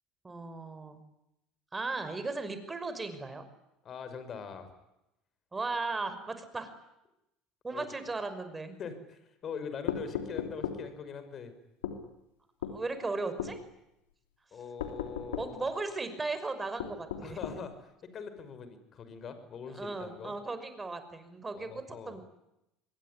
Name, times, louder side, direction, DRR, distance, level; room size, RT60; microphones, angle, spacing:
voice 1, 0.2-1.0 1.7-3.4 5.5-6.7 7.6-8.8 12.7-13.6 15.3-17.4 19.7-22.2, right 3 dB, 20° right, 10 dB, 5.8 m, -36 dB
voice 2, 3.8-4.7 7.7-7.9 8.8-11.5 14.5-15.7 17.2-17.7 18.1-20.3 21.5-22.2, left 6 dB, 45° left, 10 dB, 5.9 m, -42 dB
sound 1, 9.9-10.8 11.8-12.0 12.6-12.8 13.4-13.6 14.8-15.5 16.8-17.6, left 9 dB, 80° left, 3.2 m, -36 dB
26.5 x 22.0 x 9.9 m, 0.87 s
hypercardioid pair, 70°, 0 cm